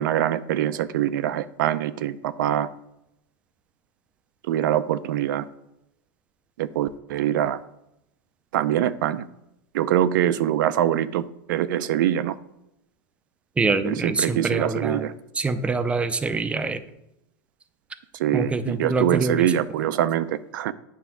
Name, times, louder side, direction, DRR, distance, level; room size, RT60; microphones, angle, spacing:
voice 1, 0.0-2.7 4.4-5.5 6.6-7.6 8.5-9.3 9.7-12.4 13.8-15.1 18.1-20.7, right 11 dB, 85° right, 14 dB, 0.5 m, -24 dB
voice 2, 13.6-15.0 15.4-16.8 18.3-19.4, right 3 dB, 10° right, 10 dB, 0.5 m, -25 dB
9.3 x 3.4 x 6.1 m, 0.84 s
supercardioid pair, 140°, 10 cm